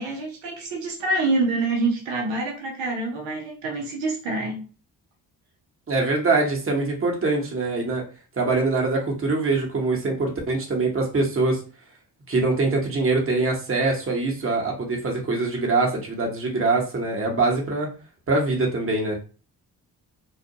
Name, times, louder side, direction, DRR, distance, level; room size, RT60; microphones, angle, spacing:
voice 1, 0.0-4.6, right 2 dB, 80° right, 0 dB, 0.7 m, -26 dB
voice 2, 5.9-8.0 8.4-11.6 12.3-17.9 18.3-19.2, right 3 dB, 30° right, 0 dB, 1.0 m, -23 dB
2.4 x 2.2 x 2.7 m, 0.36 s
hypercardioid pair, 40°, 46 cm